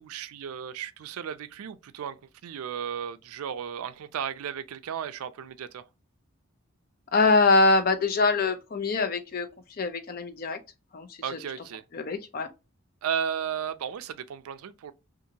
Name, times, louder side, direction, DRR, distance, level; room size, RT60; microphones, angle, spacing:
voice 1, 0.0-2.2 2.4-5.8 11.2-11.8 13.0-14.9, right 8 dB, 80° right, 0.4 m, -34 dB
voice 2, 7.1-9.5 9.8-10.6 10.9-11.4 11.9-12.5, left 3 dB, 40° left, 0.4 m, -24 dB
2.7 x 2.5 x 2.7 m
head